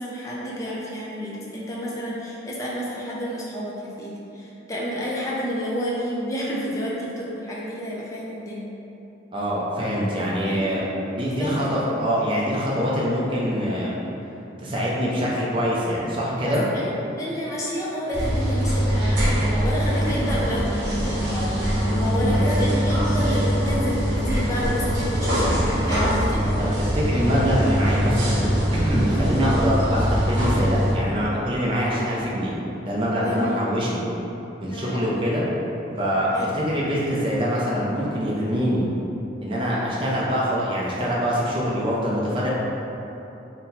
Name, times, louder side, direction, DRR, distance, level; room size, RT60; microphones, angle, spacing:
voice 1, 0.0-8.6 10.5-10.7 11.2-11.5 11.8-11.9 12.8-13.1 16.4-26.4 33.2-33.5 34.7-35.0 36.3-36.5, equal, 15° left, -6 dB, 0.5 m, -30 dB
voice 2, 9.3-13.9 14.6-16.6 22.2-22.4 26.6-26.7 26.9-32.6 32.9-34.0 34.6-35.4 36.0-38.9 39.4-42.5, equal, 25° right, -6 dB, 0.5 m, -24 dB
sound 1, 18.1-30.9, equal, 70° right, 1.0 m, -23 dB
4.1 x 2.2 x 4.0 m, 3.0 s
head